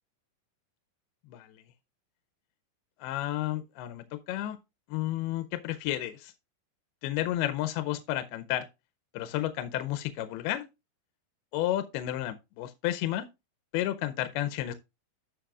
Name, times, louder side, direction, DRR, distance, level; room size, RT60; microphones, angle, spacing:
voice 1, 3.0-4.6 4.9-6.3 7.0-8.7 9.1-10.6 11.5-13.3 13.7-14.7, left 14 dB, 85° left, 2.6 m, -31 dB
15.0 x 5.3 x 2.4 m
omnidirectional pair, 4.5 m